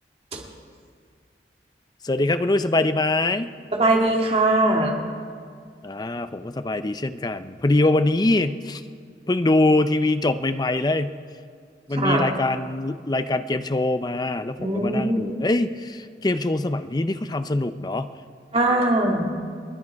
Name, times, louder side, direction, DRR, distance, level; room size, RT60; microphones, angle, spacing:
voice 1, 2.0-3.5 5.8-8.8 9.3-11.2 11.9-18.1, left 2 dB, 25° left, 11 dB, 0.5 m, -23 dB
voice 2, 3.7-5.0 11.9-12.3 14.6-15.3 18.5-19.4, right 2 dB, 35° right, 0 dB, 2.3 m, -21 dB
30.0 x 10.0 x 4.7 m, 2.1 s
head